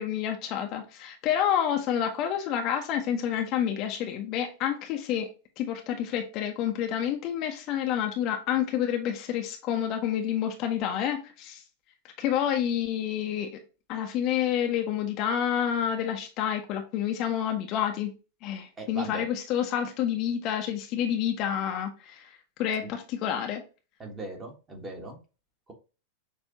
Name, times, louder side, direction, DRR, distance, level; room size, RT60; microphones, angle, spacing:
voice 1, 0.0-5.3 5.6-11.6 12.2-13.5 13.9-18.1 18.4-23.6, left 9 dB, 40° left, 4 dB, 0.7 m, -29 dB
voice 2, 18.8-19.3 22.8-22.9 24.0-25.2, right 2 dB, 20° right, 2 dB, 1.5 m, -39 dB
6.4 x 2.6 x 2.8 m, 0.32 s
figure-of-eight pair, 90°, 0 cm